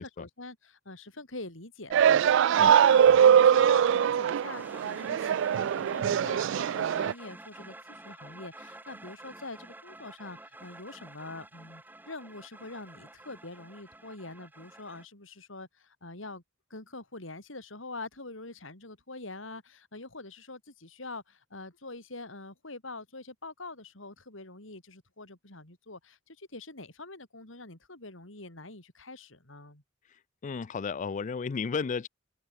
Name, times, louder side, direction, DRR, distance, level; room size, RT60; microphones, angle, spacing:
voice 1, 0.0-16.4 16.7-29.8, left 2 dB, 70° left, 4.9 m, -44 dB
sound 1, 1.9-7.1, right 8 dB, 65° right, 0.3 m, -22 dB
sound 2, 2.6-15.0, right 2 dB, 10° right, 1.0 m, -50 dB
voice 2, 30.4-32.1, left 5 dB, 40° left, 0.4 m, -33 dB
open air
head